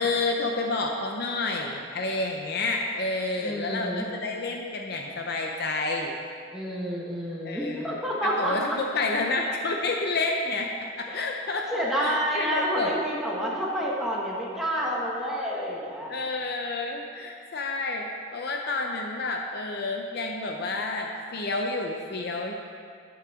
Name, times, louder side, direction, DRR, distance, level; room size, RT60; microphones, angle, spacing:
voice 1, 0.0-6.2 7.4-8.0 8.4-10.7 11.0-11.7 12.0-12.9 16.1-18.1 18.3-22.5, left 3 dB, 55° left, 2 dB, 0.7 m, -29 dB
voice 2, 3.4-4.1 6.5-8.6 11.1-11.2 11.7-16.1, equal, ahead, -6 dB, 1.3 m, -29 dB
12.0 x 8.7 x 3.7 m, 2.2 s
head